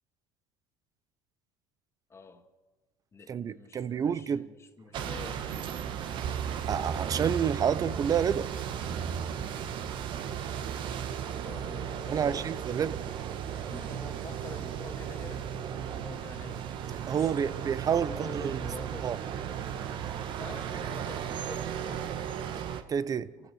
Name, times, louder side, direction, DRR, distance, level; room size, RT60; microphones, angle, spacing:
voice 1, 2.1-2.5 3.1-6.3 11.4-12.6 13.7-16.6 17.1-19.2 20.3-22.2, left 4 dB, 25° left, 2.1 m, -48 dB
voice 2, 3.3-4.5 6.7-8.5 8.9-9.5 12.1-13.0 17.1-18.6 19.0-19.2 22.9-23.3, right 8 dB, 35° right, 0.8 m, -29 dB
sound 1, 4.9-22.8, right 8 dB, 55° right, 1.5 m, -35 dB
28.5 x 15.5 x 6.5 m
hypercardioid pair, 75°, 10 cm